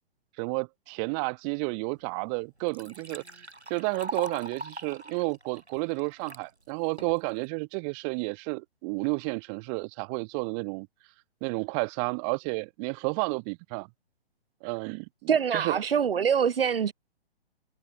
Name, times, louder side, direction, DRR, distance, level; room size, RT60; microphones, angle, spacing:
voice 1, 0.4-3.2 3.7-10.9 11.4-13.9 14.6-15.8, right 37 dB, 30° right, 7.1 m, -31 dB
Liquid, 1.9-2.0 2.4-6.4 7.0-7.5, right 2 dB, 90° right, 5.8 m, -41 dB
voice 2, 15.3-16.9, right 7 dB, 60° right, 1.8 m, -24 dB
figure-of-eight pair, 130°, 32 cm